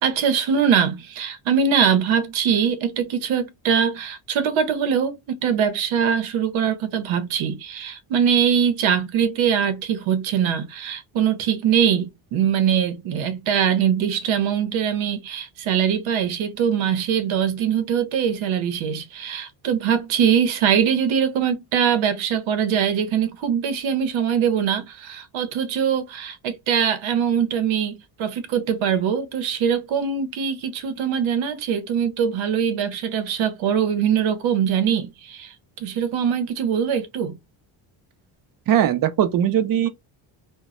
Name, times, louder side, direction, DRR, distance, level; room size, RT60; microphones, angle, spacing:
voice 1, 0.0-37.4, right 8 dB, 75° right, 0.8 m, -22 dB
voice 2, 38.7-39.9, right 10 dB, 45° right, 0.5 m, -19 dB
2.2 x 2.0 x 3.6 m
cardioid pair, 110°, 47 cm